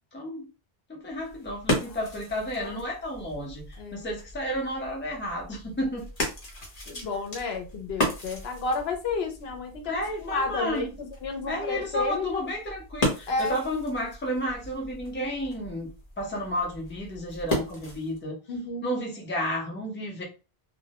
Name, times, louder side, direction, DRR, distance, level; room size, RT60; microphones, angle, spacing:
voice 1, 0.1-0.5 0.9-6.1 9.8-10.9 11.4-15.9 16.2-18.4 18.8-20.2, equal, 15° left, -1 dB, 0.6 m, -32 dB
sound 1, 1.1-18.2, left 1 dB, 40° left, 0.8 m, -36 dB
voice 2, 6.9-12.5 13.3-13.6 18.5-18.9, left 4 dB, 75° left, 4 dB, 0.8 m, -31 dB
2.2 x 2.0 x 2.8 m, 0.32 s
omnidirectional pair, 1.0 m